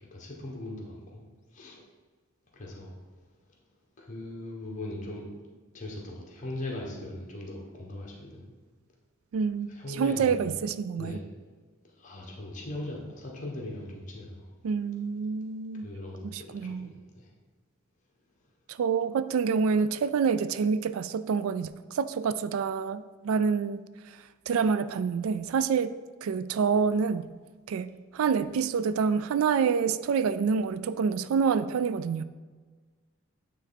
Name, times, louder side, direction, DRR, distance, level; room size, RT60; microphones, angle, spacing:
voice 1, 0.1-1.2 1.5-1.8 2.5-2.9 4.0-8.4 9.7-10.5 11.0-11.2 12.0-14.5 15.8-17.3 19.0-19.1, left 1 dB, 35° left, -2 dB, 1.2 m, -39 dB
voice 2, 9.3-11.2 14.6-15.9 16.2-16.9 18.7-24.2 24.5-25.9 26.2-27.3 27.7-32.2, right 6 dB, 90° right, 14 dB, 0.3 m, -27 dB
9.0 x 3.3 x 4.1 m, 1.4 s
head